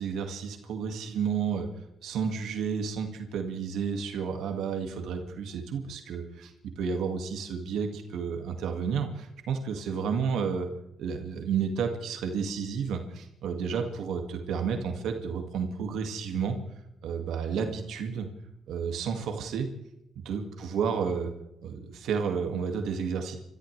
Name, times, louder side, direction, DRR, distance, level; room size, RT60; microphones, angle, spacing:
voice 1, 0.0-1.7 2.0-10.7 11.0-16.6 17.0-18.3 18.7-19.7 20.2-21.3 21.6-23.4, right 6 dB, 80° right, 4 dB, 2.1 m, -31 dB
29.5 x 14.0 x 3.4 m, 0.85 s
cardioid pair, 90°, 0 cm